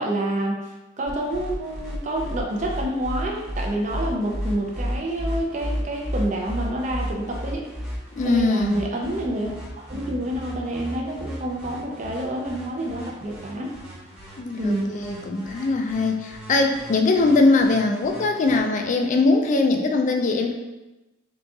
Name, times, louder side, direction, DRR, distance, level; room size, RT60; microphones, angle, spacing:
voice 1, 0.0-7.7 8.2-13.7 14.6-14.9, right 1 dB, 35° right, 0 dB, 0.5 m, -28 dB
sound 1, 1.1-18.6, equal, 5° right, 0.9 m, -34 dB
voice 2, 8.2-8.8 14.4-20.5, left 3 dB, 35° left, 4 dB, 0.4 m, -21 dB
3.8 x 3.7 x 2.4 m, 1.0 s
head